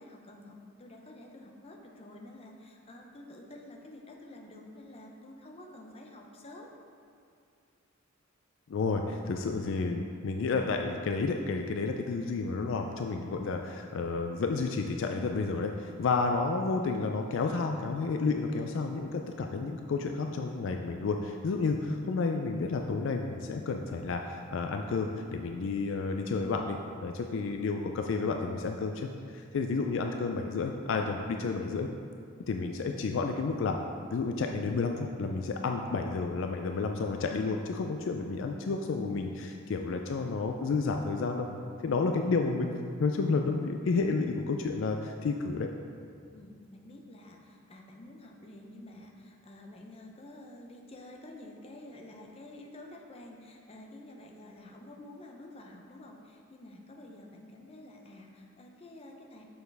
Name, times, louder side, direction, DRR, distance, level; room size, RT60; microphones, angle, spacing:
voice 1, 0.0-6.7 46.3-59.4, left 1 dB, 30° left, 0 dB, 0.6 m, -49 dB
voice 2, 8.7-31.9 32.5-33.8 34.1-41.5 41.8-42.7 43.0-45.7, left 4 dB, 60° left, 4 dB, 0.3 m, -31 dB
6.9 x 6.4 x 3.4 m, 2.3 s
head